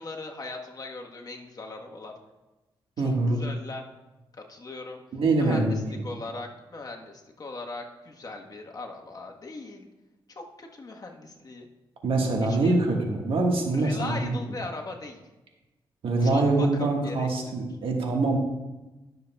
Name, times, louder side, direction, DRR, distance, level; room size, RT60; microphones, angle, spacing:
voice 1, 0.0-2.2 3.0-3.9 4.5-5.0 5.4-5.7 6.0-9.9 10.3-11.7 12.4-12.8 13.7-15.2 16.2-17.3, left 3 dB, 45° left, 1 dB, 1.2 m, -39 dB
voice 2, 3.0-3.4 5.1-6.0 12.0-14.4 16.0-18.4, right 2 dB, 75° right, 1 dB, 1.5 m, -24 dB
12.0 x 6.7 x 2.3 m, 1.1 s
cardioid pair, 70°, 9 cm